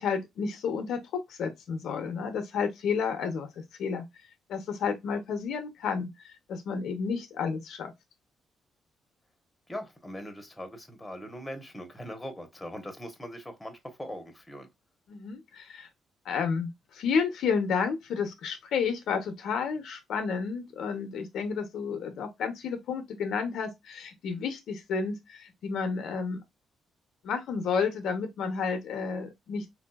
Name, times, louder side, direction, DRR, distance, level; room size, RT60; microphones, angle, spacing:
voice 1, 0.0-3.5 3.8-4.0 4.5-6.1 6.5-7.9 15.1-15.9 16.3-26.4 27.2-29.7, left 6 dB, 75° left, 0.7 m, -31 dB
voice 2, 9.7-14.7, equal, 10° left, 1.0 m, -41 dB
3.6 x 2.7 x 2.3 m
cardioid pair, 90°, 0 cm